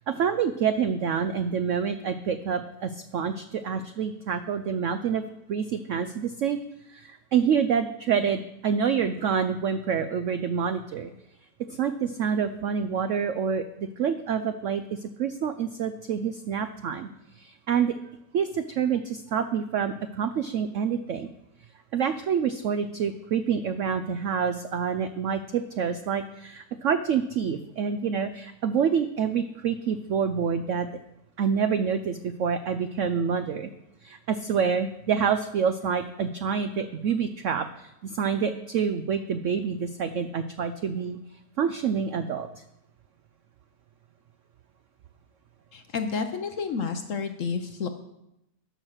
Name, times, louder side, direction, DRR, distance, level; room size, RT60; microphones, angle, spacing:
voice 1, 0.1-5.2 5.5-6.6 6.9-11.1 11.7-17.1 17.4-17.9 18.3-21.3 21.9-30.9 31.4-33.7 34.0-41.2 41.6-42.5, right 7 dB, 75° right, 10 dB, 0.7 m, -27 dB
voice 2, 45.7-47.9, left 5 dB, 60° left, 7 dB, 0.9 m, -30 dB
10.5 x 6.2 x 6.4 m, 0.86 s
omnidirectional pair, 1.9 m